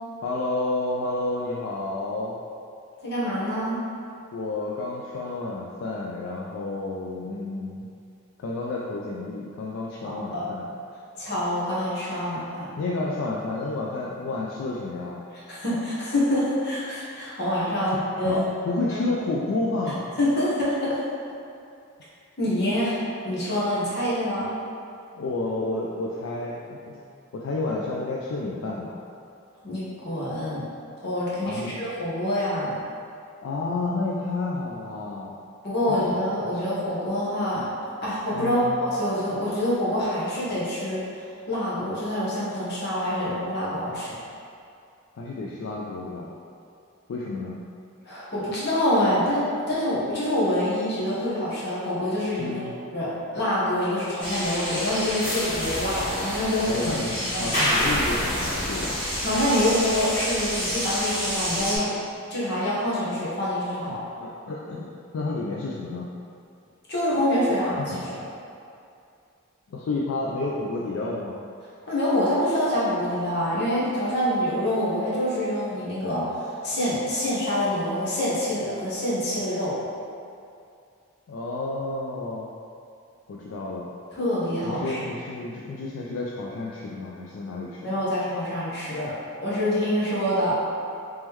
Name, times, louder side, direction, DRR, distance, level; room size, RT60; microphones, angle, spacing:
voice 1, 0.2-2.4 4.3-7.8 8.4-10.6 12.8-15.2 18.2-20.1 25.1-27.0 27.3-29.0 31.5-31.7 33.4-35.3 35.9-36.3 38.3-38.8 45.2-46.3 47.1-47.6 52.4-52.7 56.7-59.0 64.2-66.1 67.8-68.0 69.7-71.4 81.3-82.5 83.3-83.9 84.6-87.8, left 2 dB, 70° left, -4 dB, 0.3 m, -30 dB
voice 2, 3.0-3.8 10.0-10.4 11.2-12.7 15.5-18.5 18.9-19.0 20.2-21.0 22.4-23.0 23.2-24.5 29.6-30.7 31.0-32.7 35.6-37.6 38.0-41.0 41.5-44.1 48.0-56.9 57.2-57.6 59.2-61.9 62.3-64.0 66.9-68.2 71.8-79.7 84.1-85.0 87.8-89.1 89.4-90.6, left 1 dB, 50° left, -8 dB, 1.0 m, -26 dB
sound 1, 54.2-61.8, equal, 25° left, 1.4 m, -28 dB
3.6 x 3.1 x 3.0 m, 2.5 s
head